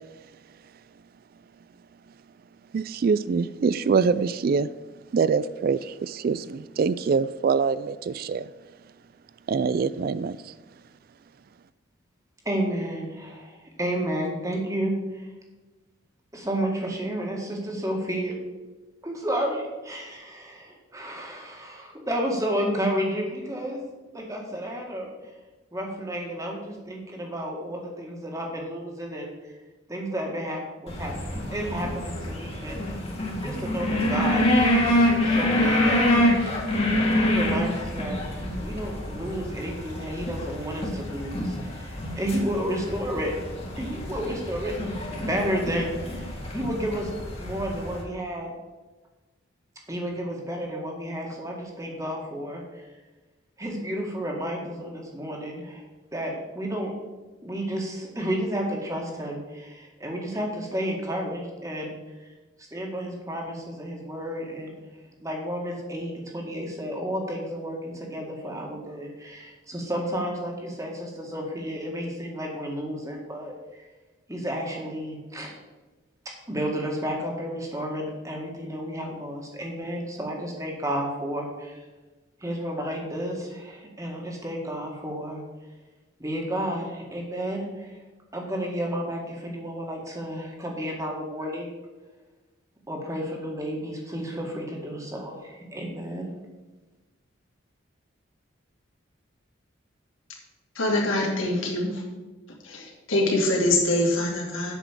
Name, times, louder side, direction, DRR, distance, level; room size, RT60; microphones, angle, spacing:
voice 1, 2.7-4.7 5.1-8.5 9.5-10.4, right 5 dB, 45° right, 16 dB, 0.3 m, -24 dB
voice 2, 12.5-15.3 16.3-18.3 19.0-23.8 24.1-25.1 25.7-29.3 29.9-32.8 33.4-36.1 36.4-36.6 37.2-38.2 38.6-43.3 43.8-48.5 49.9-52.8 53.6-55.8 56.1-56.9 57.4-62.3 62.6-64.7 65.2-73.8 74.3-75.5 76.3-81.8 82.4-85.4 86.2-88.0 88.3-91.7 92.9-96.3, equal, 15° right, 0 dB, 1.8 m, -31 dB
sound 1, 30.9-48.0, left 1 dB, 30° left, 1.9 m, -26 dB
voice 3, 100.8-102.0 102.6-104.7, left 1 dB, 85° left, -1 dB, 2.6 m, -24 dB
8.2 x 6.1 x 7.3 m, 1.2 s
head